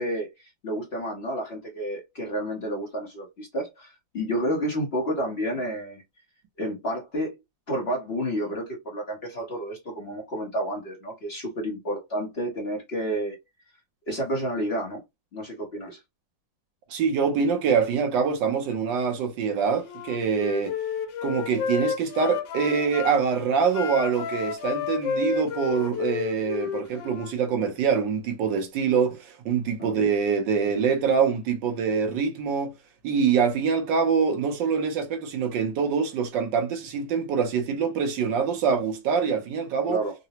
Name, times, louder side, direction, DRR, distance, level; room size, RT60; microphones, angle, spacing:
voice 1, 0.0-6.0 6.6-7.4 7.7-13.4 14.1-15.0 15.3-16.0 29.8-29.9 39.9-40.1, equal, 45° left, 0.9 m, -30 dB
voice 2, 16.9-20.8 21.2-32.7 33.0-40.0, right 6 dB, 75° right, 1.4 m, -25 dB
Wind instrument woodwind instrument, 19.8-23.2 23.7-27.3, left 7 dB, 80° left, 1.4 m, -31 dB
3.8 x 2.0 x 2.8 m
omnidirectional pair, 2.0 m